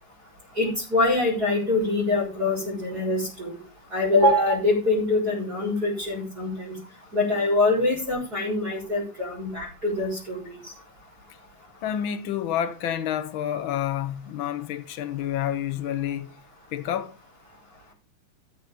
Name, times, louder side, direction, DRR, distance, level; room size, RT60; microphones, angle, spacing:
voice 1, 0.5-3.6 3.9-6.8 7.1-10.7, left 2 dB, 25° right, 4.4 m, -24 dB
voice 2, 11.8-16.3 16.7-17.1, left 10 dB, 80° left, 1.1 m, -29 dB
13.5 x 6.5 x 5.3 m
omnidirectional pair, 3.7 m